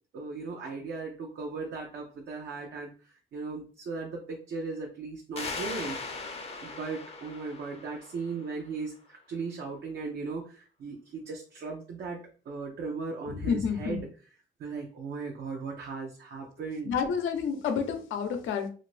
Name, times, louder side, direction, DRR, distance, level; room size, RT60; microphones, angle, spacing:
voice 1, 0.1-2.9 3.3-6.0 6.6-12.2 12.5-14.1 14.6-16.9, right 4 dB, 60° right, 0 dB, 0.7 m, -37 dB
sound 1, 5.4-8.7, left 3 dB, 30° left, 0.6 m, -39 dB
voice 2, 13.3-14.0 16.8-18.7, left 6 dB, 80° left, 6 dB, 0.6 m, -29 dB
2.6 x 2.5 x 3.2 m, 0.38 s
cardioid pair, 90°, 20 cm